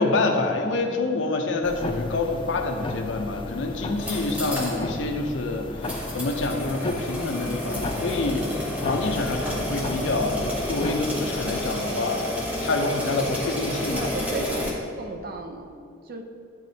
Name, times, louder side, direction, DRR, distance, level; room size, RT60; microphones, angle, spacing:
voice 1, 0.0-8.5 8.8-12.2 12.6-14.1, left 3 dB, 75° left, 4 dB, 0.6 m, -27 dB
sound 1, 1.6-11.8, left 2 dB, 25° left, 0.3 m, -35 dB
sound 2, 4.0-4.8 5.1-5.2 5.8-14.7, left 1 dB, 5° right, 1.0 m, -31 dB
voice 2, 13.9-15.8 16.0-16.2, right 3 dB, 50° right, 4 dB, 0.6 m, -35 dB
10.5 x 4.1 x 2.8 m, 2.5 s
head